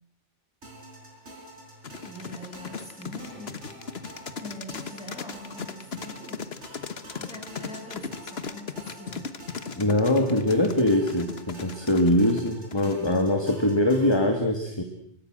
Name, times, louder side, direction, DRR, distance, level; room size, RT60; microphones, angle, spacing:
sound 1, 0.6-14.3, right 1 dB, 70° right, 5.4 m, -47 dB
sound 2, 1.8-13.3, left 6 dB, 60° left, 1.5 m, -37 dB
voice 1, 2.1-3.6 4.4-6.4 7.1-9.3 12.8-13.2, left 1 dB, 5° right, -1 dB, 7.2 m, -43 dB
voice 2, 9.8-14.8, left 1 dB, 20° left, 4 dB, 2.1 m, -23 dB
25.5 x 23.5 x 6.3 m, 0.70 s
omnidirectional pair, 1.2 m